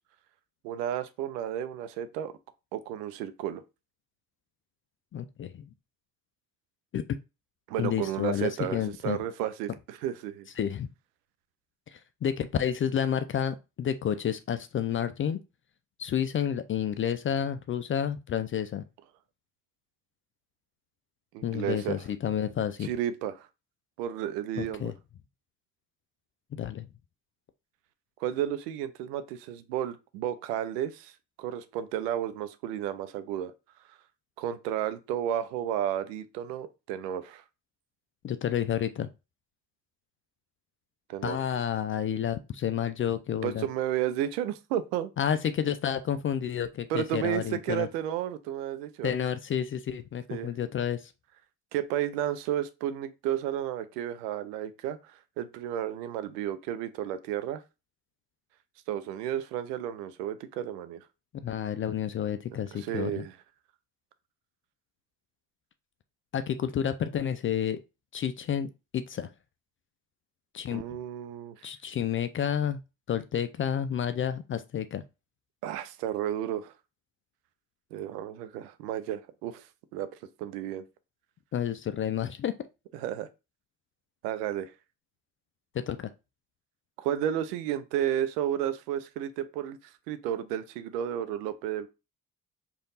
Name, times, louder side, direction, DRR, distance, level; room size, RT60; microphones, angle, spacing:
voice 1, 0.6-2.3 2.7-3.6 7.7-10.5 21.3-22.0 22.8-23.5 24.0-24.9 28.2-31.1 31.4-33.5 34.4-37.4 41.1-41.4 43.4-45.1 46.9-49.1 50.3-50.5 51.7-57.6 58.9-61.0 62.7-63.3 70.7-71.6 75.6-76.7 77.9-79.6 79.9-80.1 80.4-80.8 82.9-83.3 84.2-84.7 87.0-89.8 90.1-91.9, right 11 dB, 75° right, 0.7 m, -32 dB
voice 2, 5.1-5.7 6.9-7.0 7.8-9.2 10.6-10.9 11.9-15.4 16.0-18.8 21.4-22.9 24.6-24.9 26.5-26.9 38.2-39.1 41.2-43.7 45.2-47.9 49.0-51.1 61.3-63.3 66.3-67.8 68.1-69.3 70.5-70.8 71.6-72.8 73.1-75.0 81.5-82.5 85.7-86.1, left 9 dB, 30° left, 0.3 m, -30 dB
5.0 x 2.5 x 4.0 m
figure-of-eight pair, 45°, 49 cm